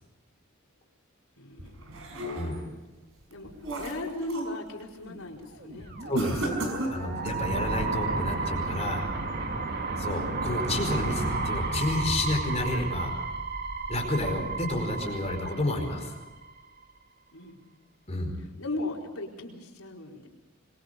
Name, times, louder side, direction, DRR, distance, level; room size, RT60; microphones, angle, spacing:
voice 1, 1.4-2.0 3.3-6.2 17.3-17.8 18.6-20.3, left 2 dB, 85° left, -1 dB, 4.5 m, -37 dB
sound 1, 1.6-2.7 3.2-4.6 4.9-5.3 6.1-7.5, right 1 dB, 70° right, 5.6 m, -34 dB
sound 2, 5.6-16.5, right 3 dB, 50° right, 2.1 m, -32 dB
voice 2, 6.1-6.6 6.9-9.1 10.0-13.2 13.9-16.1 18.1-18.3, left 1 dB, 30° left, 2 dB, 4.8 m, -30 dB
25.5 x 22.5 x 5.3 m, 1.1 s
head